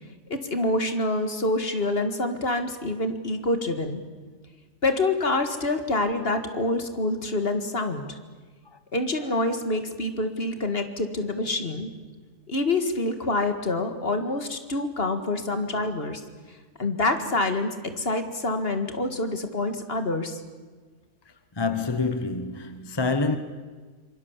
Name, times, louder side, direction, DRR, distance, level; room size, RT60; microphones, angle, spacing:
voice 1, 0.3-4.0 4.8-8.2 8.9-11.9 12.5-16.2 16.8-20.4, left 2 dB, 45° left, 2.0 m, -26 dB
voice 2, 21.6-23.4, left 3 dB, 20° left, 1.0 m, -27 dB
26.5 x 23.5 x 7.3 m
omnidirectional pair, 1.5 m